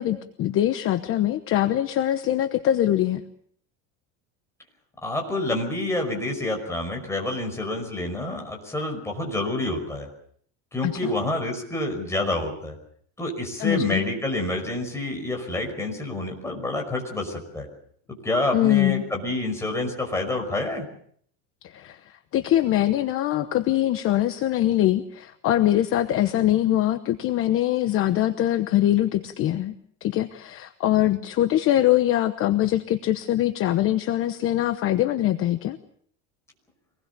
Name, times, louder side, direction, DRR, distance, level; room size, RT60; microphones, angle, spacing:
voice 1, 0.0-3.2 10.8-11.1 13.6-14.0 18.5-19.0 21.6-22.0 22.3-29.7 30.0-35.8, left 13 dB, 35° left, 10 dB, 1.0 m, -23 dB
voice 2, 5.0-10.1 10.7-12.8 13.2-17.7 18.2-20.9, left 2 dB, 5° left, 1 dB, 5.4 m, -28 dB
25.5 x 19.5 x 6.8 m, 0.62 s
cardioid pair, 165°, 36 cm